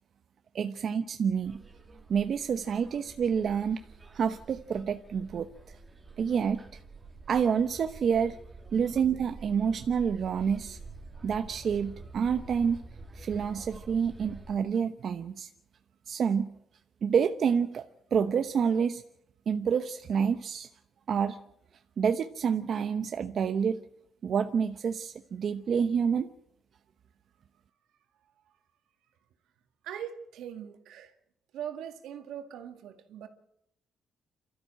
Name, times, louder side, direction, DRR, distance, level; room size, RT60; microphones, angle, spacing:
voice 1, 0.5-1.6 2.1-3.8 4.1-5.8 6.2-6.8 7.3-8.4 8.7-10.8 11.2-12.8 13.1-15.5 16.1-16.5 17.0-19.0 19.5-20.7 21.1-21.4 22.0-23.8 24.2-26.3, right 7 dB, 55° right, 1.0 m, -28 dB
sound 1, 1.4-14.5, right 3 dB, 25° right, 3.2 m, -48 dB
voice 2, 29.8-31.1 31.5-33.3, right 9 dB, 85° right, 2.1 m, -41 dB
28.0 x 13.5 x 7.7 m
cardioid pair, 90°, 0 cm